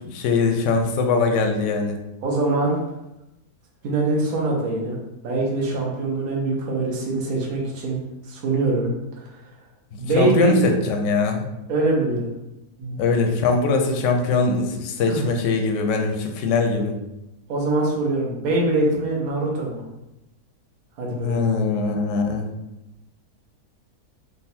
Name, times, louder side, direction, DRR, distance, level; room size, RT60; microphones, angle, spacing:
voice 1, 0.1-2.0 10.2-11.5 13.0-17.0 21.2-22.5, left 4 dB, 65° left, 4 dB, 0.8 m, -21 dB
voice 2, 2.2-2.8 3.8-5.0 5.2-8.0 8.3-8.9 9.2-9.3 10.0-10.6 11.7-12.3 12.8-13.0 15.1-15.2 17.5-19.8 21.0-21.5, right 2 dB, 65° right, -2 dB, 1.3 m, -23 dB
3.9 x 2.3 x 4.1 m, 0.92 s
omnidirectional pair, 1.7 m